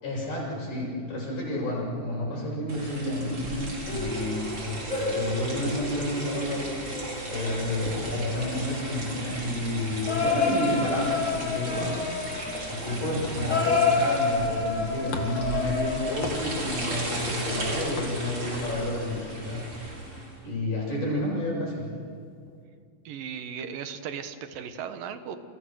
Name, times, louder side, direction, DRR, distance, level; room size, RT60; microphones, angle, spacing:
voice 1, 0.0-6.8 7.3-12.0 12.7-19.6 20.4-21.8, left 1 dB, 70° left, -4 dB, 8.9 m, -30 dB
sound 1, 2.7-20.4, right 1 dB, 40° right, 5.8 m, -36 dB
sound 2, 3.9-9.1 10.0-16.6 17.9-19.5 19.9-20.2 20.9-21.0, left 4 dB, 25° left, 3.0 m, -30 dB
sound 3, 12.2-19.5, left 3 dB, 55° left, 3.1 m, -43 dB
voice 2, 23.0-25.4, right 7 dB, 90° right, 9 dB, 3.1 m, -36 dB
29.5 x 28.5 x 6.4 m, 2.2 s
omnidirectional pair, 3.8 m